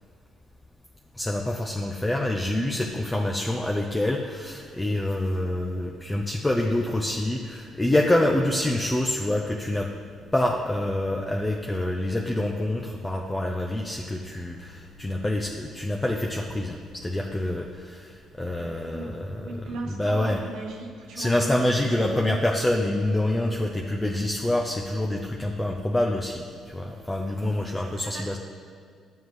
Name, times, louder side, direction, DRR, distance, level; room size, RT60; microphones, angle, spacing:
voice 1, 1.1-9.9 10.3-19.6 19.9-20.4 21.2-28.4, left 1 dB, 10° left, 0 dB, 0.5 m, -26 dB
sound 1, 7.3-9.3 9.9-17.8 18.2-22.3 22.9-26.1, left 5 dB, 85° left, 1.5 m, -53 dB
voice 2, 18.6-22.4 23.8-24.0 27.5-28.4, right 3 dB, 90° right, 0 dB, 1.3 m, -39 dB
11.5 x 7.2 x 3.2 m, 2.2 s
cardioid pair, 115°, 0 cm